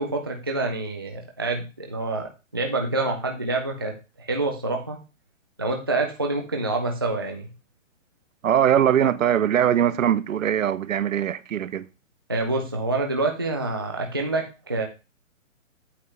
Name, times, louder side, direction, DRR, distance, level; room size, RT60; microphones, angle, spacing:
voice 1, 0.0-2.3 2.5-5.0 5.6-7.5 12.3-14.8, right 2 dB, 20° right, 0.4 m, -27 dB
voice 2, 8.4-11.9, right 9 dB, 80° right, 0.8 m, -21 dB
8.5 x 7.4 x 3.3 m
hypercardioid pair, 160°, 39 cm